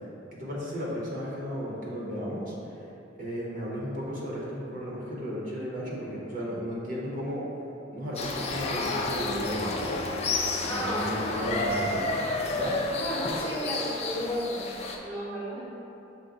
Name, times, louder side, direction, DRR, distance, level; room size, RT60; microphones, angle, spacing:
voice 1, 0.3-2.5 3.2-7.5 7.9-10.0 10.7-12.1 12.5-12.8, equal, 45° right, -5 dB, 0.8 m, -34 dB
sound 1, 8.2-15.0, left 2 dB, 35° left, 0.4 m, -31 dB
voice 2, 10.7-11.2 13.0-14.7 15.0-15.7, equal, 10° left, -8 dB, 0.8 m, -33 dB
5.8 x 2.1 x 3.8 m, 2.9 s
head